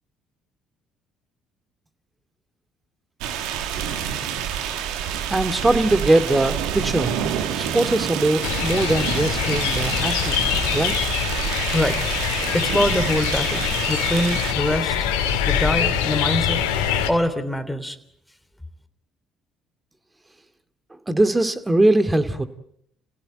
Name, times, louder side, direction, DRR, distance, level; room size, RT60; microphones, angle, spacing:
sound 1, 3.2-14.5, right 9 dB, 75° right, 2.2 m, -28 dB
voice 1, 5.3-7.2 7.5-10.9 21.1-22.5, right 2 dB, 15° right, 11 dB, 2.3 m, -21 dB
sound 2, 8.4-17.1, left 8 dB, 80° left, 2.7 m, -24 dB
voice 2, 12.5-15.0 15.4-16.6 17.1-18.0, left 1 dB, 5° left, 9 dB, 3.3 m, -24 dB
29.5 x 17.0 x 9.1 m, 0.75 s
hypercardioid pair, 60°, 0 cm